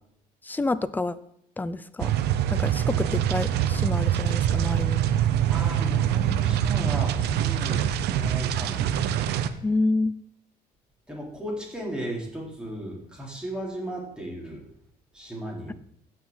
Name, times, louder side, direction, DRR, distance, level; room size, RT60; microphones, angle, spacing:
voice 1, 0.4-1.2 1.6-2.1 2.5-5.0 9.6-10.1, left 2 dB, 10° left, 14 dB, 0.5 m, -28 dB
sound 1, 2.0-9.5, right 10 dB, 80° right, 0.7 m, -24 dB
voice 2, 5.5-8.9 11.1-14.7 15.1-15.7, right 1 dB, 5° right, -3 dB, 3.8 m, -35 dB
16.0 x 6.1 x 4.0 m, 0.71 s
cardioid pair, 110°, 17 cm